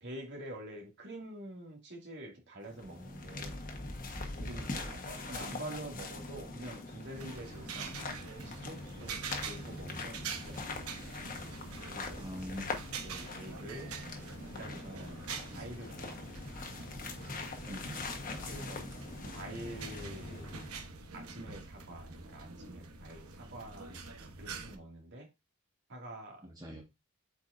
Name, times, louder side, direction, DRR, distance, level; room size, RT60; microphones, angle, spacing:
voice 1, 0.0-3.6 4.4-7.9 8.4-11.2 11.9-12.3 13.0-14.0 14.5-15.3 15.5-16.7 18.4-18.9 19.2-20.6 21.1-24.0 24.4-25.3 25.9-26.5, right 1 dB, 55° right, 2.3 m, -47 dB
sound 1, 2.6-20.9, left 3 dB, 40° left, 1.3 m, -43 dB
voice 2, 4.6-5.1 10.0-10.2 12.2-12.7 17.6-18.0 26.4-26.8, equal, 20° right, 1.6 m, -44 dB
sound 2, 7.1-24.8, right 4 dB, 75° right, 1.2 m, -45 dB
7.9 x 4.7 x 2.6 m
head